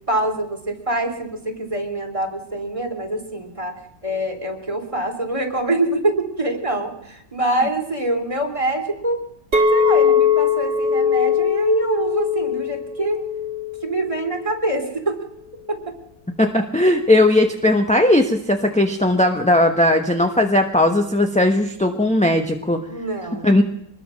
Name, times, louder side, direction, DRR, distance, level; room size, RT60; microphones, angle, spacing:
voice 1, 0.1-9.2 9.7-13.2 13.8-15.2 15.7-16.0 22.9-23.5, right 1 dB, 15° right, 2 dB, 3.4 m, -25 dB
Chink clink, 9.5-14.7, left 6 dB, 35° right, 2.6 m, -20 dB
voice 2, 16.4-22.8 23.4-23.6, left 1 dB, 5° left, 4 dB, 0.9 m, -17 dB
24.0 x 20.5 x 6.4 m, 0.76 s
omnidirectional pair, 2.0 m